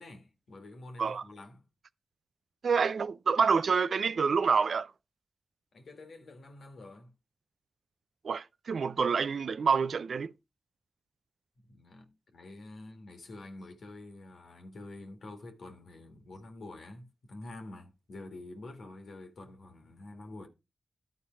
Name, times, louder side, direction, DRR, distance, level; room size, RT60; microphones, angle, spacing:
voice 1, 0.0-1.6 5.7-7.1 11.7-20.5, left 2 dB, 75° left, 1.8 m, -47 dB
voice 2, 2.6-4.9 8.2-10.3, right 5 dB, 75° right, 0.4 m, -27 dB
11.5 x 4.5 x 4.5 m
cardioid pair, 45°, 0 cm